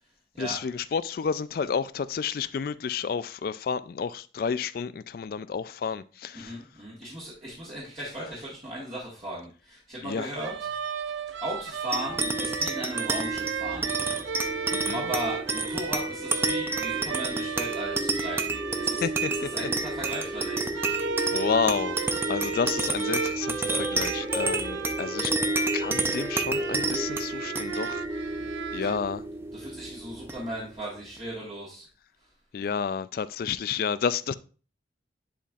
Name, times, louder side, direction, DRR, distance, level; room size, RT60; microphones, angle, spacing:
voice 1, 0.4-6.6 10.0-10.3 14.7-15.1 19.0-19.5 21.3-22.0 22.3-25.3 25.7-28.0 28.7-29.2 32.5-34.3, left 6 dB, 50° left, 0.3 m, -30 dB
voice 2, 6.3-10.7 10.9-11.1 11.4-13.9 14.9-20.7 28.8-28.9 29.5-31.8, right 1 dB, 30° right, 1.6 m, -37 dB
sound 1, 10.4-29.0, right 6 dB, 80° right, 0.4 m, -35 dB
sound 2, 11.9-30.8, right 2 dB, 15° right, 0.5 m, -30 dB
10.0 x 4.2 x 2.4 m
head